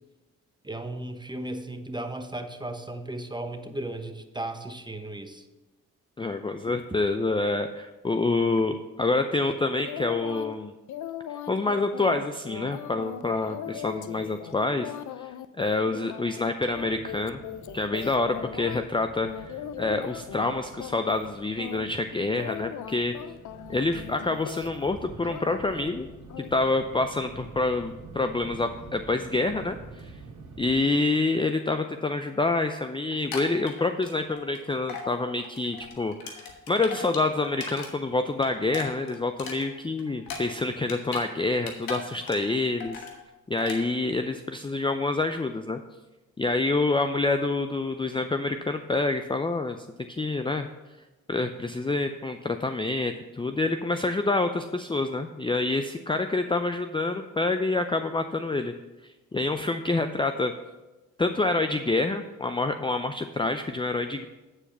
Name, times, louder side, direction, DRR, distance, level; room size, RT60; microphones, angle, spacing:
voice 1, 0.6-5.5, right 1 dB, 15° right, 7 dB, 1.0 m, -35 dB
voice 2, 6.2-10.7 11.3-15.3 15.6-17.4 17.7-23.2 23.7-26.1 26.4-29.8 30.0-30.1 30.6-43.0 43.5-45.8 46.4-50.7 51.3-58.7 59.3-60.5 61.2-64.2, left 3 dB, 15° left, 8 dB, 0.5 m, -27 dB
sound 1, 9.8-10.5 10.9-18.8 19.2-20.5 20.8-21.3 21.6-24.9 25.2-25.9 26.3-26.5, left 10 dB, 60° left, 0.5 m, -39 dB
sound 2, 16.7-30.8, right 4 dB, 60° right, 2.1 m, -47 dB
sound 3, 33.1-34.6 34.9-35.1 35.4-37.9 38.2-41.3 41.5-42.5 42.8-43.2 43.6-43.8, left 5 dB, 85° left, 1.3 m, -38 dB
8.7 x 4.8 x 6.0 m, 1.1 s
supercardioid pair, 50°, 34 cm